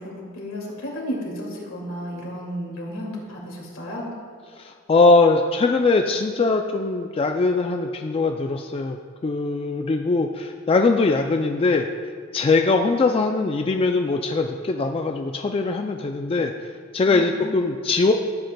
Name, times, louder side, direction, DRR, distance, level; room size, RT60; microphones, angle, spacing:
voice 1, 0.0-4.1 17.0-17.5, equal, 75° left, -2 dB, 2.2 m, -33 dB
voice 2, 4.6-11.9 12.3-18.1, left 3 dB, 25° left, 4 dB, 0.3 m, -21 dB
14.0 x 7.8 x 2.2 m, 2.2 s
head